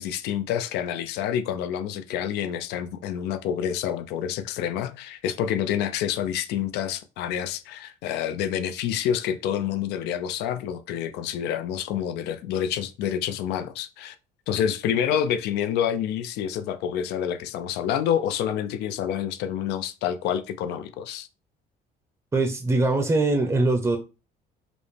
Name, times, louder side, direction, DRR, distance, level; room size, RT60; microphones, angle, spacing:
voice 1, 0.0-14.2 14.5-21.3, left 9 dB, 85° left, 0.5 m, -28 dB
voice 2, 22.3-24.0, right 2 dB, 20° right, 0.6 m, -22 dB
5.1 x 2.1 x 3.2 m
cardioid pair, 110°, 17 cm